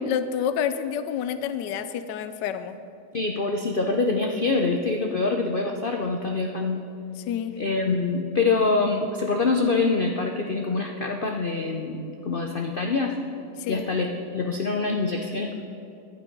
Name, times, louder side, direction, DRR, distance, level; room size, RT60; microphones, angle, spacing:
voice 1, 0.0-2.8 7.3-7.5 13.6-13.8, left 8 dB, 85° left, 11 dB, 1.2 m, -28 dB
voice 2, 3.1-6.8 7.6-13.2 13.7-15.5, left 3 dB, 55° left, 3 dB, 0.6 m, -25 dB
12.0 x 10.0 x 5.3 m, 2.7 s
omnidirectional pair, 1.8 m